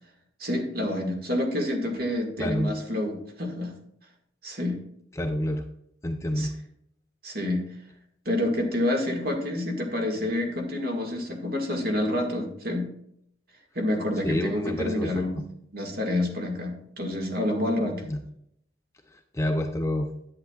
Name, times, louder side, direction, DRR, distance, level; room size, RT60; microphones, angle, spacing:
voice 1, 0.4-3.7 4.4-4.8 6.4-6.5 7.2-7.6 8.3-12.9 13.8-15.4 15.7-18.0, left 1 dB, 50° right, 1 dB, 1.8 m, -28 dB
voice 2, 2.4-2.7 5.2-5.7 6.0-6.5 14.2-15.2 18.1-18.2 19.3-20.1, left 1 dB, 15° left, 5 dB, 0.5 m, -28 dB
10.5 x 8.7 x 2.4 m, 0.72 s
head